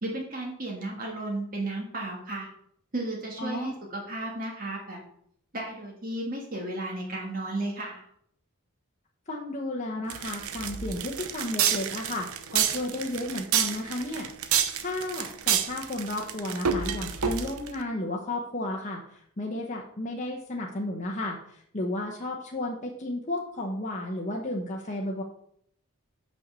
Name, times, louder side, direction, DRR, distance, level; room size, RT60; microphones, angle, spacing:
voice 1, 0.0-2.5 2.9-5.0 5.5-8.0, right 2 dB, 40° right, -1 dB, 1.7 m, -34 dB
voice 2, 3.4-3.7 9.3-14.3 14.8-25.2, left 1 dB, 35° left, -1 dB, 1.0 m, -33 dB
sound 1, 10.1-17.8, right 8 dB, 80° right, 0.8 m, -28 dB
5.9 x 5.6 x 6.7 m, 0.68 s
head